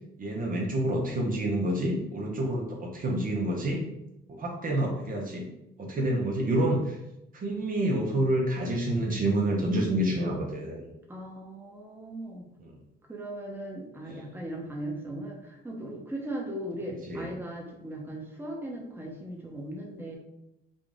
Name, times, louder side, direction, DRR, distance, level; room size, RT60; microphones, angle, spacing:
voice 1, 0.2-3.8 4.3-5.5 5.8-7.0 7.3-10.9 12.6-12.8 17.1-17.3, right 1 dB, 45° right, 0 dB, 0.8 m, -28 dB
voice 2, 11.1-12.5 13.1-20.2, right 1 dB, 10° right, -1 dB, 0.9 m, -38 dB
3.8 x 2.4 x 3.6 m, 0.87 s
cardioid pair, 90°, 20 cm